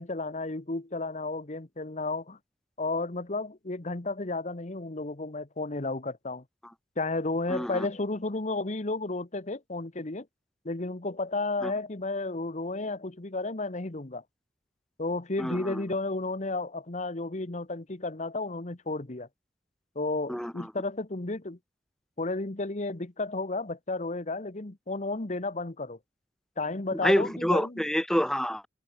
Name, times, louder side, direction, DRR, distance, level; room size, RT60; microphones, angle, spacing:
voice 1, 0.0-2.4 2.8-6.4 7.0-10.3 10.6-14.2 15.0-19.3 19.9-21.6 22.2-26.0 26.6-27.8, left 2 dB, 40° left, 1.3 m, -32 dB
voice 2, 7.5-7.9 11.6-11.7 15.4-15.8 20.3-20.7 26.9-28.7, equal, 5° left, 1.0 m, -27 dB
head